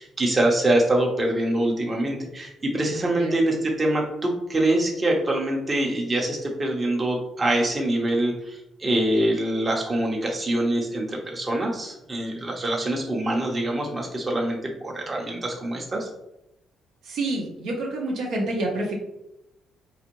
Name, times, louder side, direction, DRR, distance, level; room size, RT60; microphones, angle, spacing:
voice 1, 0.0-16.1, right 1 dB, 30° right, -1 dB, 0.8 m, -24 dB
voice 2, 17.1-18.9, right 2 dB, 80° right, -1 dB, 1.0 m, -27 dB
4.0 x 2.6 x 3.0 m, 0.86 s
cardioid pair, 90°, 0 cm